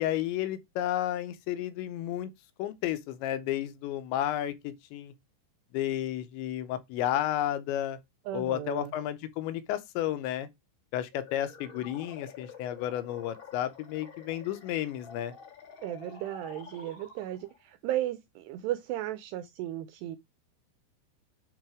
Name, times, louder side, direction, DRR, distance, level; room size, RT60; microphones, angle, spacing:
voice 1, 0.0-2.3 2.6-5.1 5.7-8.0 8.3-10.5 10.9-15.3, left 12 dB, 80° left, 3.0 m, -32 dB
voice 2, 8.3-8.9 15.8-20.2, right 13 dB, 85° right, 2.4 m, -35 dB
sound 1, 11.1-17.6, left 6 dB, 45° left, 1.7 m, -49 dB
9.4 x 3.9 x 4.9 m
omnidirectional pair, 5.3 m